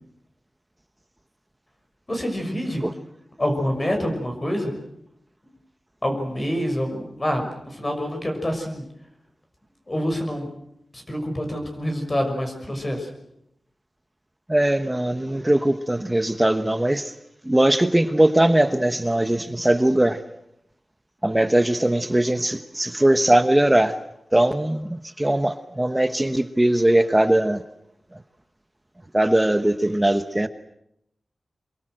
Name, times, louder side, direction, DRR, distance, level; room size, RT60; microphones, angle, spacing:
voice 1, 2.1-2.8 3.4-4.7 6.0-8.8 9.9-10.5 10.9-13.1, equal, 25° left, 3 dB, 6.1 m, -26 dB
voice 2, 14.5-17.1 17.4-20.2 21.2-24.0 24.3-27.6 29.1-30.5, right 1 dB, 15° right, 9 dB, 1.1 m, -20 dB
25.5 x 23.0 x 7.8 m, 0.79 s
wide cardioid pair, 105°, 0 cm